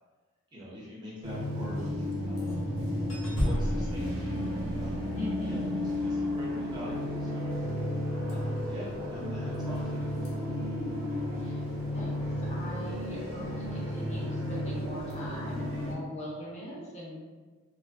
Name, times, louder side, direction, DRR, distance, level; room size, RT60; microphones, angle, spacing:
voice 1, 0.5-2.7 3.4-7.5 8.3-10.1, right 1 dB, 20° right, -7 dB, 0.6 m, -45 dB
sound 1, 1.2-15.9, left 1 dB, 90° right, 0.6 m, -33 dB
sound 2, 2.1-2.6 3.1-5.5 8.3-8.6 9.5-9.8 10.1-10.3 15.1-15.2, equal, 85° left, 0.7 m, -34 dB
voice 2, 5.2-5.7 11.4-11.6 11.9-17.2, equal, 35° left, -6 dB, 0.5 m, -41 dB
2.4 x 2.1 x 2.4 m, 1.4 s
head